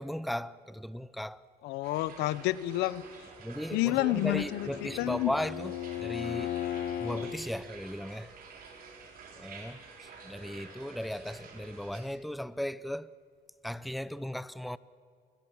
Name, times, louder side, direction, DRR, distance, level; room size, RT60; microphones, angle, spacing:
voice 1, 0.0-1.4 3.4-6.6 7.0-8.3 9.3-9.8 10.2-13.1 13.6-14.8, equal, ahead, 0.6 m, -36 dB
voice 2, 1.6-3.0 3.7-5.3, left 17 dB, 90° left, 0.8 m, -29 dB
Water flowing to the metal container XY, 1.8-12.0, right 5 dB, 60° right, 5.0 m, -50 dB
Bowed string instrument, 3.7-7.4, left 10 dB, 60° left, 1.9 m, -37 dB
27.0 x 21.0 x 7.3 m
cardioid pair, 110°, 17 cm